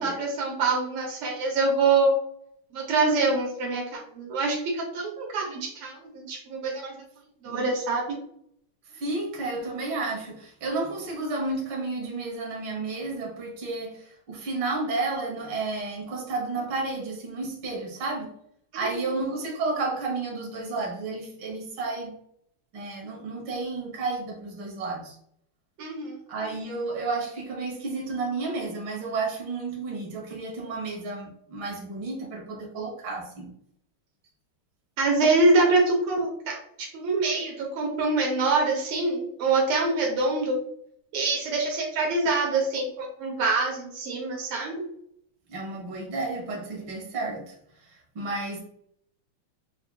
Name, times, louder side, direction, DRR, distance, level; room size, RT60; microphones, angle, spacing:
voice 1, 0.0-2.1 2.7-7.0 7.4-8.2 25.8-26.2 35.0-40.6 41.1-44.8, right 3 dB, 85° right, -1 dB, 1.8 m, -25 dB
voice 2, 8.9-18.3 18.7-22.1 22.7-25.2 26.3-33.5 45.5-48.6, right 3 dB, 60° right, -2 dB, 1.7 m, -32 dB
5.7 x 2.3 x 2.2 m, 0.68 s
omnidirectional pair, 2.3 m